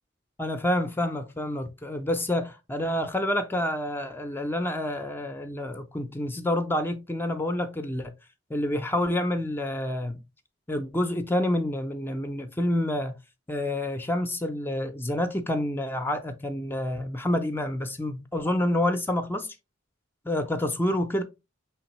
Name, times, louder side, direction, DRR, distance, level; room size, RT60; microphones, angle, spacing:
voice 1, 0.4-8.1 8.5-10.2 10.7-13.2 13.5-19.5 20.3-21.2, left 1 dB, 10° left, 0.4 m, -28 dB
5.2 x 3.5 x 2.9 m
head